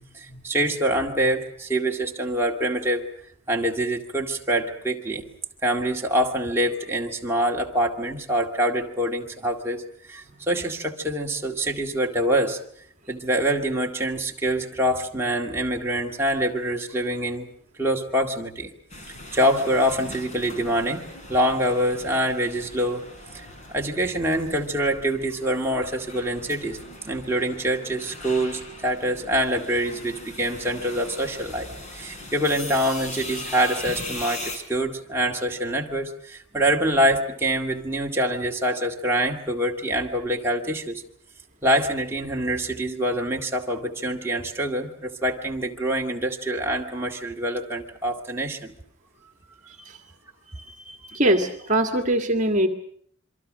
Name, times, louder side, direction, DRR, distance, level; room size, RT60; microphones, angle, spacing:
voice 1, 0.1-3.1 3.5-5.2 5.6-9.8 10.1-12.6 13.1-17.5 17.8-18.7 19.3-21.0 21.3-23.1 23.3-26.8 27.0-41.0 41.6-48.7, right 1 dB, 10° right, -1 dB, 2.1 m, -25 dB
sound 1, 18.9-34.6, left 2 dB, 35° left, 4.7 m, -40 dB
voice 2, 50.7-52.7, right 1 dB, 35° right, 5 dB, 1.8 m, -22 dB
27.5 x 23.5 x 6.4 m, 0.63 s
head